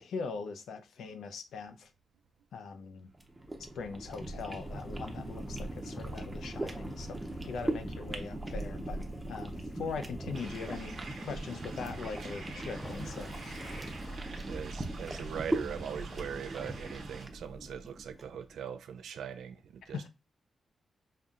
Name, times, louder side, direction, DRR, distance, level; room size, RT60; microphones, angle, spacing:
voice 1, 0.0-1.9 2.5-3.1 3.6-7.2 7.5-9.0 9.3-10.9 11.2-13.6 19.9-20.1, left 5 dB, 85° left, 0.6 m, -41 dB
sound 1, 3.1-18.4, right 1 dB, 10° right, 0.5 m, -39 dB
Waves surf / Splash splatter / Trickle dribble, 4.0-14.2, left 2 dB, 25° left, 0.8 m, -51 dB
sound 2, 10.3-17.3, right 4 dB, 75° right, 0.9 m, -49 dB
voice 2, 14.5-20.0, right 8 dB, 90° right, 0.4 m, -41 dB
5.4 x 2.7 x 2.4 m
wide cardioid pair, 175°, 0 cm